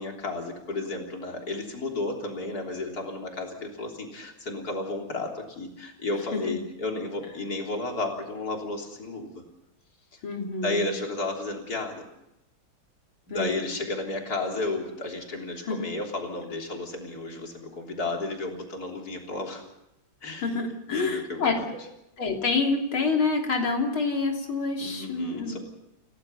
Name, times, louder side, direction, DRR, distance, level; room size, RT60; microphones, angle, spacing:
voice 1, 0.0-9.4 10.6-12.1 13.3-19.6 20.2-20.5 20.9-21.6 24.8-25.6, left 2 dB, 50° left, 1 dB, 4.0 m, -32 dB
voice 2, 6.3-6.6 10.2-10.9 13.3-13.7 15.6-15.9 20.4-21.8 22.2-25.6, left 4 dB, 90° left, 2 dB, 3.8 m, -27 dB
29.0 x 17.5 x 5.7 m, 0.86 s
omnidirectional pair, 2.2 m